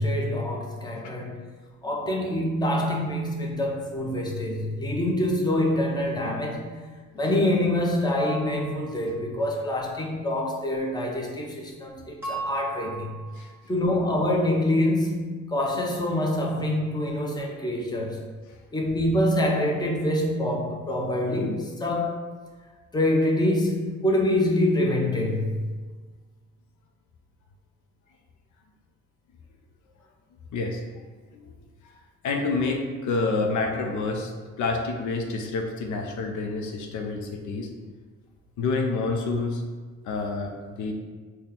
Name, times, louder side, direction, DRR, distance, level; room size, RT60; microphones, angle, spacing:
voice 1, 0.0-1.4 1.8-6.8 7.1-13.1 13.7-18.2 18.7-22.2 22.9-25.6, left 1 dB, 15° left, -1 dB, 0.7 m, -25 dB
sound 1, 8.1-9.3 12.2-13.6, right 4 dB, 10° right, 1.3 m, -36 dB
voice 2, 30.5-30.8 31.3-31.5 31.8-31.9 32.2-34.3 34.6-37.7 38.6-39.6 40.0-40.9, left 3 dB, 75° left, 2 dB, 0.6 m, -28 dB
4.1 x 2.2 x 3.7 m, 1.4 s
cardioid pair, 90°, 30 cm